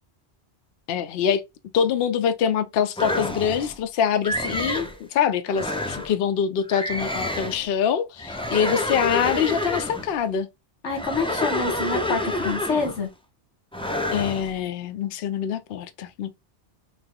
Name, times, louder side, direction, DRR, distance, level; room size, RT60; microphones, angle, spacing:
voice 1, 0.9-1.4 1.7-10.5 14.1-16.3, left 8 dB, 65° left, 0.7 m, -24 dB
sound 1, 3.0-3.8 4.2-5.0 5.5-6.1 6.7-7.7 8.2-10.1 10.9-13.1 13.7-14.5, left 1 dB, 10° left, 0.3 m, -28 dB
voice 2, 10.8-13.1, left 4 dB, 90° left, 1.5 m, -27 dB
3.5 x 2.8 x 3.7 m
omnidirectional pair, 1.2 m